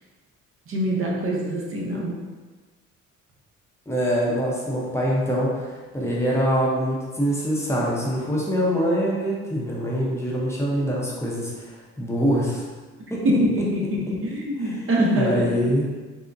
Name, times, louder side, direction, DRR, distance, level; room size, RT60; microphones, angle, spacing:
voice 1, 0.7-2.1 13.2-15.5, equal, 45° right, -3 dB, 0.7 m, -24 dB
voice 2, 3.9-5.7 5.9-12.6 13.1-13.2 14.1-14.2 14.6-14.9 15.2-15.8, equal, 10° left, -5 dB, 0.7 m, -24 dB
3.7 x 2.1 x 2.6 m, 1.3 s
cardioid pair, 90°, 30 cm